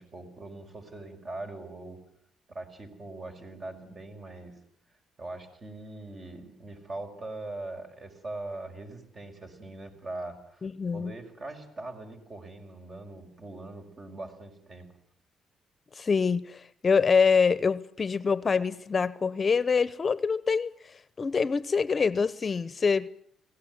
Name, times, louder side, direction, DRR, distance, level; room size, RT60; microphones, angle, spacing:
voice 1, 0.0-2.0 2.5-4.6 5.2-14.9, right 2 dB, 45° right, 5.9 m, -41 dB
voice 2, 10.6-11.1 16.0-20.7 21.2-23.1, left 5 dB, 35° left, 0.9 m, -25 dB
24.5 x 18.0 x 9.7 m
cardioid pair, 90°, 0 cm